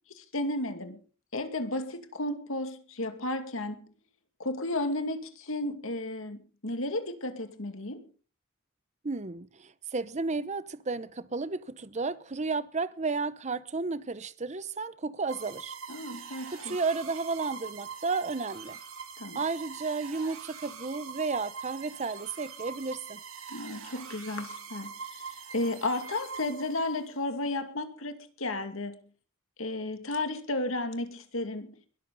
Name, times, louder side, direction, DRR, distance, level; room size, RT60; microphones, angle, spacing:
voice 1, 0.1-1.0 1.3-3.9 4.4-8.1 15.9-16.8 19.2-19.4 23.5-29.0 29.6-31.8, left 2 dB, 70° left, 2.4 m, -33 dB
voice 2, 9.0-15.8 16.5-18.8 19.3-23.2, right 4 dB, 35° right, 0.8 m, -33 dB
sound 1, 15.3-27.1, right 6 dB, 80° right, 3.5 m, -43 dB
21.5 x 13.0 x 4.1 m
head